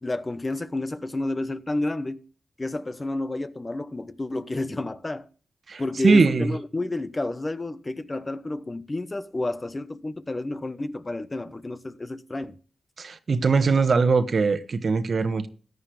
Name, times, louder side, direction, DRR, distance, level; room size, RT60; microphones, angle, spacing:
voice 1, 0.0-2.3 2.6-5.3 5.8-12.6, left 2 dB, 30° left, 1.0 m, -30 dB
voice 2, 5.7-6.5 13.0-15.5, right 4 dB, 60° right, 1.2 m, -21 dB
14.5 x 9.5 x 3.4 m
cardioid pair, 50°, 0 cm